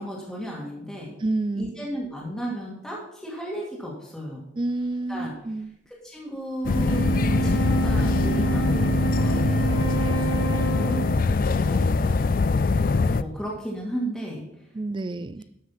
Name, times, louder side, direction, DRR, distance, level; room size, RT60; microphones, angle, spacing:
voice 1, 0.0-1.1 1.5-4.4 5.1-5.3 5.9-11.3 11.6-12.1 13.0-14.8, equal, 5° left, -4 dB, 2.1 m, -35 dB
voice 2, 1.2-1.7 4.6-5.8 14.7-15.4, right 2 dB, 25° right, 15 dB, 0.3 m, -29 dB
Wind instrument woodwind instrument, 6.5-11.3, right 7 dB, 80° left, 4.9 m, -29 dB
sound 1, 6.6-13.2, left 4 dB, 45° left, 0.4 m, -23 dB
12.5 x 6.0 x 5.8 m, 0.82 s
head